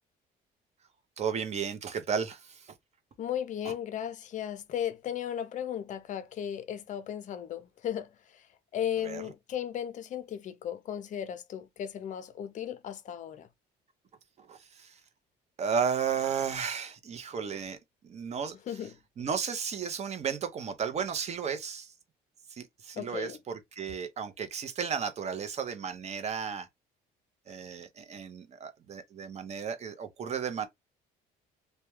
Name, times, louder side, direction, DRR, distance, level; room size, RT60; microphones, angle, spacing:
voice 1, 1.2-2.7 3.6-3.8 9.0-9.3 14.4-15.0 15.6-17.8 18.0-18.8 19.2-21.9 22.5-26.7 27.5-30.7, right 7 dB, 40° right, 0.6 m, -34 dB
voice 2, 3.2-8.4 8.7-13.5 18.7-18.9 23.0-23.4, left 10 dB, 45° left, 0.5 m, -36 dB
2.2 x 2.1 x 2.9 m
cardioid pair, 110°, 17 cm